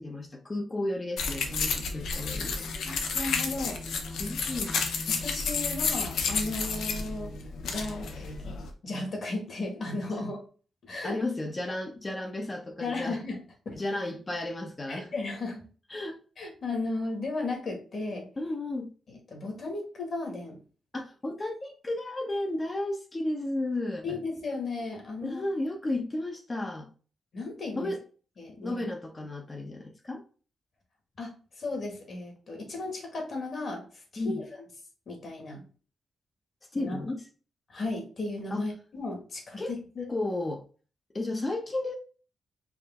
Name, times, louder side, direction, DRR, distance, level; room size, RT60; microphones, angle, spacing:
voice 1, 0.0-2.7 4.2-4.9 10.1-10.3 11.0-13.2 13.7-15.1 15.9-16.2 18.4-18.9 20.9-24.2 25.2-26.9 27.8-28.0 28.6-30.2 34.2-34.4 36.7-37.2 38.5-38.7 39.6-39.7 40.1-40.6 41.1-41.9, left 2 dB, 25° left, 0.8 m, -33 dB
sound 1, 1.2-8.7, left 4 dB, 85° left, 0.7 m, -31 dB
voice 2, 2.9-3.8 5.1-7.3 7.6-10.4 10.8-11.2 12.8-13.4 13.7-13.8 14.9-15.6 16.4-18.3 19.3-20.6 24.0-25.4 27.3-27.9 28.4-28.9 31.2-33.8 34.1-34.4 35.1-35.6 36.7-37.0 37.7-40.1, left 2 dB, 55° left, 1.8 m, -35 dB
4.9 x 2.6 x 3.6 m
cardioid pair, 110°, 0 cm